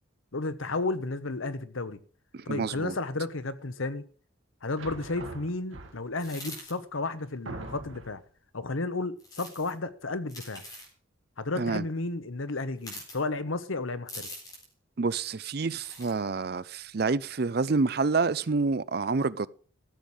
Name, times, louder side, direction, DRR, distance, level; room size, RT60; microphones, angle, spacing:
voice 1, 0.3-2.0 2.5-4.0 4.6-8.2 8.5-10.6 11.4-14.3, left 3 dB, 85° left, 1.1 m, -32 dB
voice 2, 2.3-2.9 11.6-11.8 15.0-19.5, right 4 dB, 50° right, 0.5 m, -28 dB
sound 1, 4.8-6.3 6.9-7.0 7.5-8.3, right 2 dB, 85° right, 1.8 m, -42 dB
sound 2, 6.2-6.7 9.2-9.7 10.3-10.9 12.8-13.2 14.1-14.7 15.7-16.1, left 1 dB, 20° left, 3.9 m, -43 dB
14.0 x 7.3 x 6.3 m
head